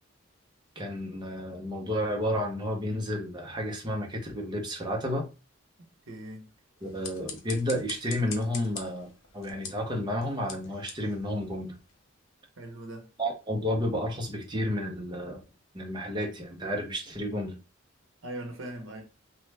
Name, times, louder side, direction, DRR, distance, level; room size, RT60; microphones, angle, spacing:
voice 1, 0.8-5.3 6.8-11.7 13.2-15.4 15.7-17.6, equal, 20° right, 0.7 m, -31 dB
voice 2, 5.8-6.5 12.6-13.1 18.2-19.0, right 1 dB, 70° right, 0.9 m, -41 dB
sound 1, 6.8-12.1, left 5 dB, 75° left, 0.7 m, -44 dB
3.1 x 2.2 x 3.3 m
head